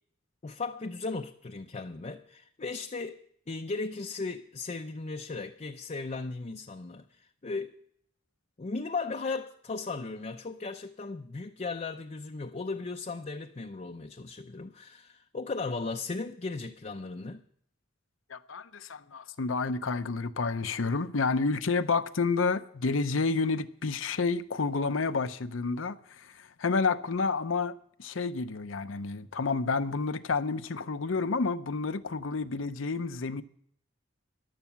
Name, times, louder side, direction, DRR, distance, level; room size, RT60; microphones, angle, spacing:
voice 1, 0.4-3.2 3.5-7.8 8.6-17.4, left 3 dB, 35° left, 0.6 m, -36 dB
voice 2, 18.3-33.4, left 4 dB, 75° left, 0.7 m, -30 dB
14.5 x 11.0 x 5.8 m
head